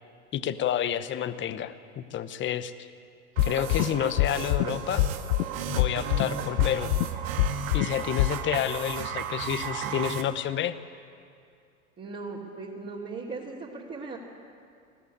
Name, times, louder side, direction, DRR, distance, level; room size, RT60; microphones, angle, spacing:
voice 1, 0.3-2.9 3.4-5.0 5.7-6.9 7.7-10.7, left 10 dB, 25° left, 13 dB, 0.9 m, -29 dB
sound 1, 3.4-3.8 4.2-4.6 5.0-5.4 5.8-6.2 6.6-7.0 7.4-7.9 8.2-8.3, left 16 dB, 55° left, 0.8 m, -23 dB
sound 2, 3.4-10.2, right 7 dB, 70° right, 1.8 m, -34 dB
voice 2, 12.0-14.2, right 3 dB, 25° right, -6 dB, 2.9 m, -38 dB
21.0 x 14.0 x 9.8 m, 2.3 s
hypercardioid pair, 105°, 43 cm